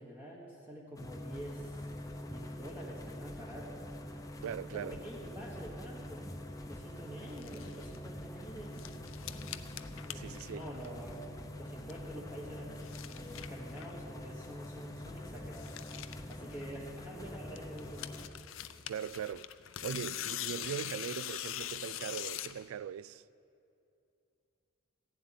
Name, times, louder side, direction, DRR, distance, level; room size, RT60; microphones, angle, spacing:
voice 1, 0.0-1.9 2.3-3.8 4.6-6.3 6.7-8.8 10.0-11.2 11.6-15.8 16.3-18.1, equal, 10° right, 1.4 m, -47 dB
sound 1, 1.0-18.3, left 1 dB, 15° left, 0.8 m, -45 dB
voice 2, 4.4-5.0 10.1-10.6 18.9-19.5 19.8-23.2, right 8 dB, 80° right, 0.3 m, -40 dB
sound 2, 7.3-8.0 8.4-11.2 11.5-12.1 12.5-14.0 14.4-14.5 14.7-14.8 15.0-15.1 15.4-17.1 17.6-22.6, left 12 dB, 70° left, 0.5 m, -43 dB
15.5 x 7.8 x 9.2 m
head